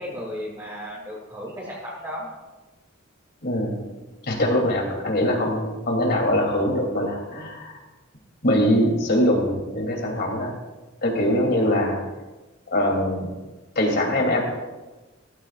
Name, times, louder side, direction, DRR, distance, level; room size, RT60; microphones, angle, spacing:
voice 1, 0.0-2.3, equal, 20° right, -8 dB, 3.3 m, -34 dB
voice 2, 3.4-3.8 4.2-7.8 8.4-10.5 11.0-12.0 12.7-13.3 13.7-14.4, left 1 dB, 55° left, 0 dB, 3.2 m, -22 dB
17.0 x 15.0 x 2.5 m, 1.2 s
head